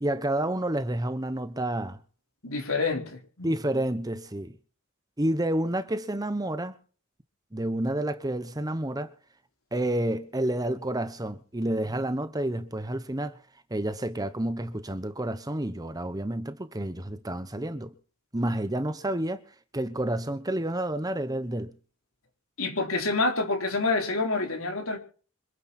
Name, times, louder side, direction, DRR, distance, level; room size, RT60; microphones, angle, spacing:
voice 1, 0.0-2.0 3.4-4.5 5.2-6.8 7.5-9.1 9.7-13.4 13.7-17.9 18.3-19.4 19.7-21.7, right 1 dB, 15° right, 1.0 m, -29 dB
voice 2, 2.4-3.5 22.6-25.0, left 3 dB, 65° left, 4.3 m, -27 dB
26.0 x 9.6 x 4.4 m
head